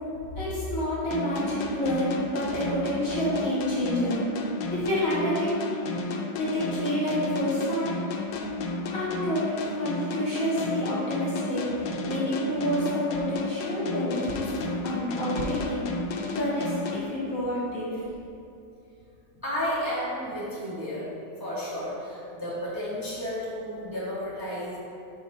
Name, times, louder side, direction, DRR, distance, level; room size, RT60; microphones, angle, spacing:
voice 1, 0.4-4.2 4.7-5.5 6.4-7.9 8.9-9.5 9.8-14.5 14.8-15.9 16.3-18.0, equal, 45° left, -7 dB, 1.7 m, -28 dB
sound 1, 1.1-17.7, left 3 dB, 75° left, 1.3 m, -33 dB
voice 2, 19.4-21.1 21.4-24.8, equal, 10° right, -9 dB, 1.3 m, -32 dB
5.8 x 5.4 x 4.5 m, 2.7 s
omnidirectional pair, 2.1 m